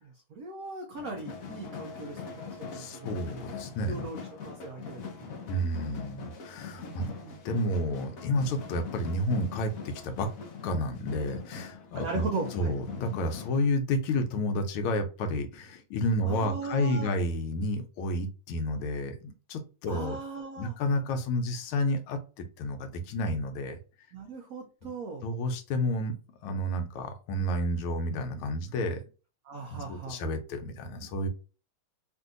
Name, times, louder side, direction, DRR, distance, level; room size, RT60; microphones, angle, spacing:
voice 1, 0.0-3.2 3.8-5.3 6.9-7.4 11.9-12.7 16.2-17.1 19.9-20.8 24.1-25.3 29.4-30.2, right 4 dB, 85° right, 0.7 m, -38 dB
sound 1, 1.0-13.7, left 6 dB, 60° left, 0.9 m, -42 dB
voice 2, 2.7-4.1 5.5-7.1 7.4-10.3 10.6-12.3 12.5-20.2 20.6-23.8 25.2-26.1 26.4-29.0 29.7-31.3, left 1 dB, 85° left, 1.6 m, -30 dB
3.7 x 2.6 x 2.4 m
omnidirectional pair, 2.3 m